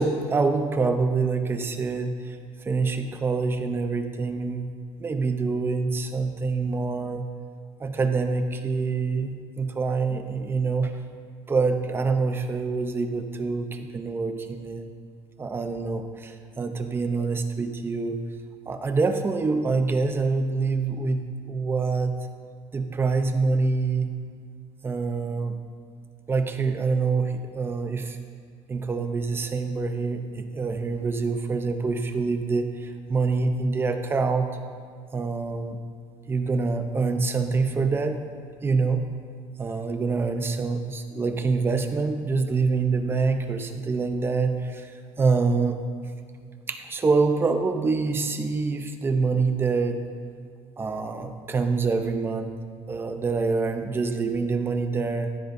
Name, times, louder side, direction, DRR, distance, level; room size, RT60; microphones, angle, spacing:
voice 1, 0.0-2.4 2.6-4.7 5.0-7.2 7.8-10.9 11.5-14.9 15.4-18.2 18.7-22.1 22.7-24.1 24.8-25.5 26.3-28.2 28.7-34.5 35.1-35.8 36.3-38.2 38.6-39.1 39.6-44.9 45.2-45.8 46.7-50.0 50.8-52.5 52.9-55.3, right 4 dB, 20° right, 7 dB, 0.7 m, -26 dB
14.0 x 12.0 x 2.6 m, 2.1 s
cardioid pair, 155°, 12 cm